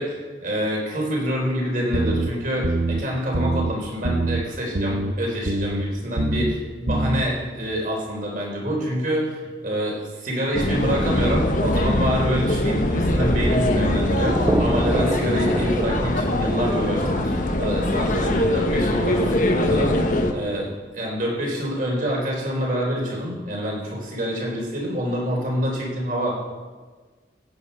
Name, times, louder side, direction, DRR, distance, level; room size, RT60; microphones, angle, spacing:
voice 1, 0.0-19.9 20.3-26.4, equal, 45° right, -2 dB, 3.8 m, -26 dB
sound 1, 1.9-2.3 2.6-3.0 3.3-3.7 4.0-4.4 4.7-5.1 5.5-5.8 6.2-6.5 6.9-7.2, right 2 dB, 65° right, 0.9 m, -24 dB
sound 2, 10.5-20.3, left 1 dB, 45° left, 1.2 m, -22 dB
sound 3, 12.8-19.7, right 1 dB, 15° right, 0.3 m, -29 dB
16.0 x 8.7 x 5.6 m, 1.4 s
head